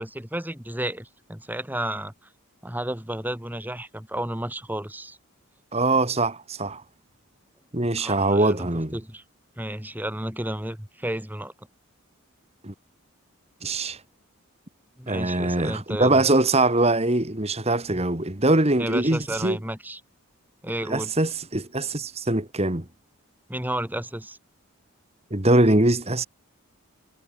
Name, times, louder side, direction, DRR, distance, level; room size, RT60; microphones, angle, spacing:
voice 1, 0.0-2.1 2.6-5.2 8.0-9.2 9.6-11.5 15.0-16.3 17.9-18.0 18.8-20.0 20.6-21.1 23.5-24.4, right 1 dB, 10° right, 3.8 m, -32 dB
voice 2, 5.7-6.8 7.7-9.0 12.6-12.7 13.6-14.0 15.1-19.6 20.9-22.8 25.3-26.3, right 2 dB, 30° right, 2.2 m, -22 dB
head